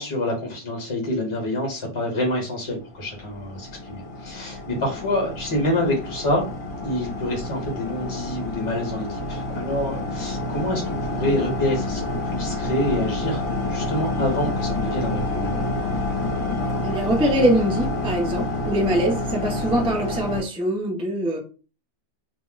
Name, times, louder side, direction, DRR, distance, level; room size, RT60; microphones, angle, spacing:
voice 1, 0.0-6.5 6.8-15.6, left 1 dB, 25° left, 0 dB, 1.0 m, -27 dB
sound 1, 2.9-20.4, left 2 dB, 65° left, 1.0 m, -28 dB
voice 2, 16.8-21.4, right 1 dB, 10° right, -1 dB, 0.4 m, -23 dB
2.4 x 2.0 x 3.7 m, 0.34 s
omnidirectional pair, 1.3 m